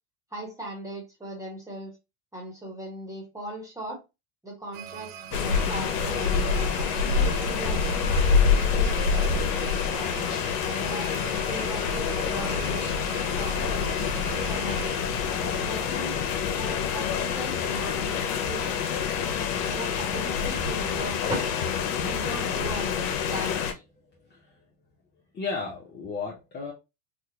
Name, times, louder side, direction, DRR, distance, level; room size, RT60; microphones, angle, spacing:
voice 1, 0.3-2.0 2.3-4.0 4.4-8.1 8.5-10.3 10.7-14.1 14.4-14.9 15.6-16.2 16.5-18.8 19.6-21.5 22.0-23.7, right 1 dB, 5° right, 1.3 m, -39 dB
sound 1, 4.7-15.0, right 9 dB, 50° right, 0.6 m, -42 dB
sound 2, 5.3-23.7, left 6 dB, 75° left, 0.9 m, -27 dB
sound 3, 11.3-22.7, left 3 dB, 45° left, 0.9 m, -39 dB
voice 2, 24.2-24.6 25.3-26.7, left 4 dB, 25° left, 0.7 m, -36 dB
3.6 x 2.3 x 2.8 m
supercardioid pair, 130°, 46 cm